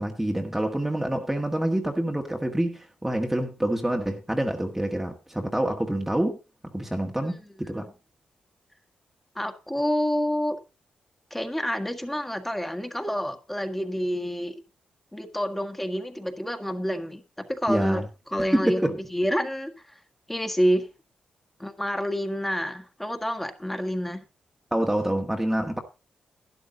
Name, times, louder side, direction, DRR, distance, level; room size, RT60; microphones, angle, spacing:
voice 1, 0.0-6.4 6.7-7.9 17.7-18.1 18.5-19.0 24.7-25.8, right 1 dB, 10° right, 1.5 m, -27 dB
voice 2, 9.3-10.6 11.3-14.6 15.1-18.0 18.3-18.8 19.1-20.0 20.3-20.9 21.6-24.2, equal, 10° left, 1.7 m, -28 dB
12.0 x 10.5 x 3.8 m
cardioid pair, 85°, 3 cm